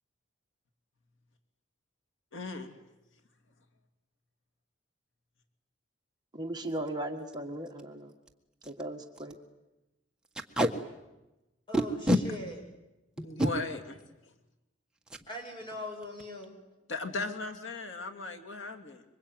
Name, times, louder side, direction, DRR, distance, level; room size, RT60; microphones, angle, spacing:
voice 1, 2.3-2.7 12.3-12.4 13.2-14.0 14.2-14.3 16.9-19.0, left 3 dB, 90° left, 6 dB, 2.6 m, -37 dB
voice 2, 6.3-8.1 8.7-9.3, right 1 dB, 20° right, 3 dB, 1.7 m, -37 dB
Packing tape duct tape, 6.7-6.9 7.3-7.4 7.7-7.8 8.3-8.4 8.6-8.8 9.2-9.3 10.3-10.7 11.7-12.2 13.2-13.5 15.1-15.2 15.6-15.8 16.0-16.4, equal, 5° right, 1.5 m, -27 dB
voice 3, 11.7-12.6 15.3-16.5, left 1 dB, 25° left, 2 dB, 7.1 m, -41 dB
26.0 x 24.5 x 9.3 m, 0.99 s
head